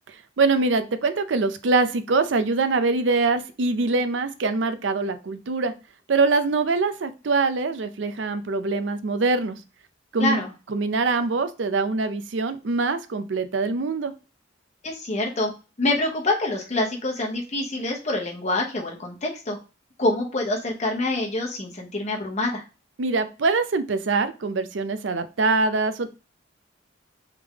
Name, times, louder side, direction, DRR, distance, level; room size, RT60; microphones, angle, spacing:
voice 1, 0.4-5.7 6.1-9.6 10.1-10.4 10.7-14.1 23.0-26.1, right 3 dB, 70° right, 11 dB, 0.5 m, -23 dB
voice 2, 10.2-10.5 14.8-15.5 15.8-19.6 20.0-22.6, left 2 dB, 40° left, 0 dB, 0.8 m, -26 dB
3.6 x 3.3 x 3.4 m, 0.32 s
head